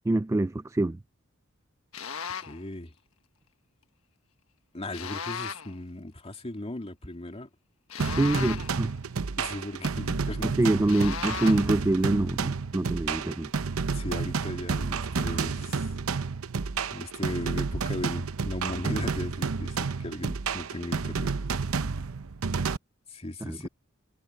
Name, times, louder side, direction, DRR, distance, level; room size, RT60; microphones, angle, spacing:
voice 1, 0.0-1.0 8.2-8.9 10.4-13.5 23.4-23.7, right 2 dB, 15° right, 0.3 m, -25 dB
sound 1, 1.9-2.6 4.9-5.8 7.9-8.9 10.9-11.8, left 7 dB, 75° left, 1.5 m, -36 dB
voice 2, 2.5-2.9 4.7-7.5 8.4-8.6 9.4-10.6 13.9-15.9 16.9-21.4 23.1-23.7, left 1 dB, 30° left, 2.5 m, -37 dB
sound 2, 8.0-22.8, right 5 dB, 80° right, 0.7 m, -30 dB
head